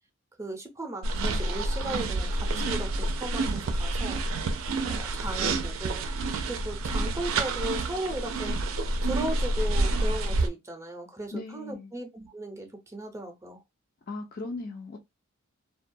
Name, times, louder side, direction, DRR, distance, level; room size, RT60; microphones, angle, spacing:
voice 1, 0.4-4.2 4.8-6.0 6.5-8.6 9.0-13.6, right 1 dB, 15° right, 0.5 m, -37 dB
sound 1, 1.0-10.5, right 2 dB, 90° right, 0.4 m, -28 dB
voice 2, 11.3-11.9 14.1-15.0, left 2 dB, 45° left, 0.4 m, -37 dB
2.2 x 2.1 x 2.6 m
head